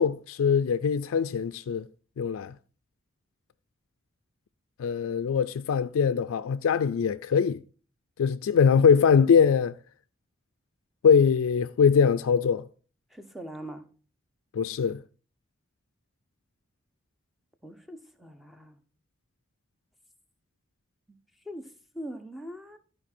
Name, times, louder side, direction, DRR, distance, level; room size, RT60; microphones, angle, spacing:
voice 1, 0.0-1.9 2.2-2.5 4.8-7.6 8.2-9.7 11.0-12.6 14.5-15.0, left 6 dB, 90° left, 0.3 m, -22 dB
voice 2, 13.1-13.9 17.6-18.8 21.5-22.8, equal, ahead, 0.7 m, -42 dB
12.0 x 4.8 x 4.3 m
head